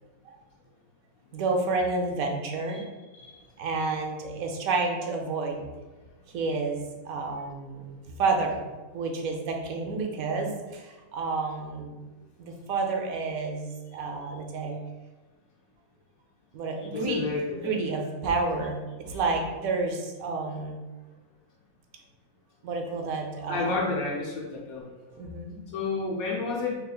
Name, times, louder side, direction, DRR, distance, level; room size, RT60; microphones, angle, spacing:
voice 1, 1.3-2.8 3.6-5.7 6.3-8.7 8.9-12.0 12.4-14.8 16.5-17.3 17.6-20.8 22.6-24.0 25.1-25.6, right 3 dB, 80° right, 2 dB, 1.1 m, -30 dB
voice 2, 16.8-17.7 19.1-19.2 23.5-24.9 25.7-26.8, left 3 dB, 80° left, -3 dB, 1.3 m, -30 dB
5.0 x 3.1 x 2.3 m, 1.2 s
omnidirectional pair, 1.5 m